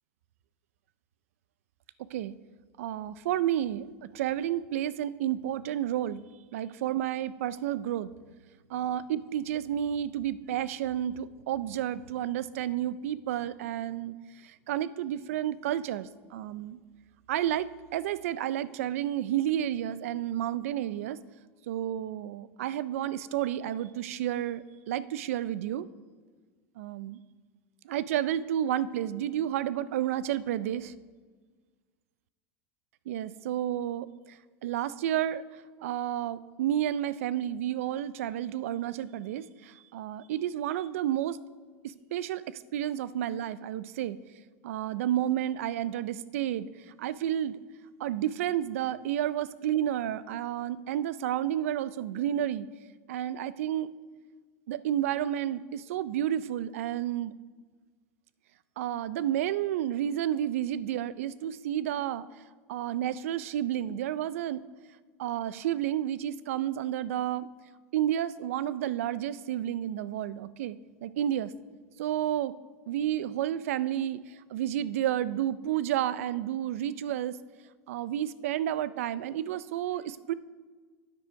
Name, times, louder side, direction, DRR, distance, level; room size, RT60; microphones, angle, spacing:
voice 1, 2.0-2.3 2.8-3.9 4.1-6.2 6.5-8.1 8.7-14.2 14.4-16.8 17.3-21.2 21.7-25.9 26.8-27.2 27.8-30.9 33.1-35.4 35.8-41.4 41.8-44.2 44.6-46.7 47.0-47.6 48.0-52.7 53.1-53.9 54.7-57.3 58.8-62.3 62.7-64.7 65.2-67.5 67.9-71.5 72.0-72.6 72.9-77.4 77.9-80.3, right 11 dB, 85° right, 17 dB, 0.4 m, -31 dB
10.5 x 9.1 x 4.7 m, 1.4 s
supercardioid pair, 165°, 7 cm